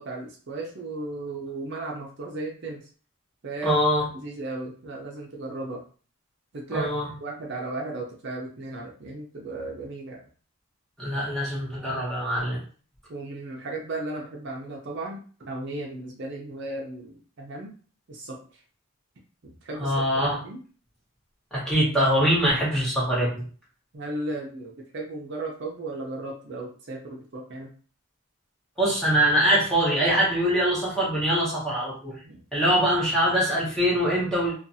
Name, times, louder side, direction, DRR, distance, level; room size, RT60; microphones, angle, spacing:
voice 1, 0.0-2.9 3.4-3.8 4.1-5.8 6.5-6.9 7.2-10.2 13.1-17.7 18.1-18.4 19.4-19.9 20.4-20.6 23.9-27.7 32.2-32.4, right 2 dB, 55° right, -1 dB, 0.5 m, -35 dB
voice 2, 3.6-4.0 6.7-7.1 11.0-12.6 19.8-20.4 21.5-23.4 28.8-32.1 32.5-34.5, equal, ahead, -7 dB, 1.0 m, -23 dB
2.6 x 2.3 x 2.6 m, 0.41 s
head